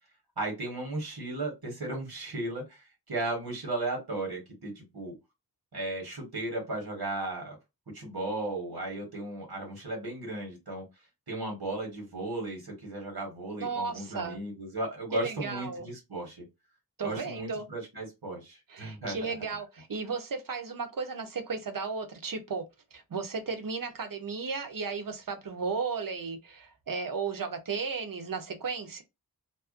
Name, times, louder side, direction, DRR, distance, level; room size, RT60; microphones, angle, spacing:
voice 1, 0.4-5.1 5.7-7.6 7.9-10.8 11.3-16.4 17.0-19.3, right 2 dB, 85° right, 1.1 m, -35 dB
voice 2, 13.6-14.4 15.1-15.9 17.0-17.7 18.7-22.6 22.9-29.0, right 5 dB, 60° right, 0.6 m, -34 dB
2.4 x 2.1 x 2.4 m
wide cardioid pair, 60°, 38 cm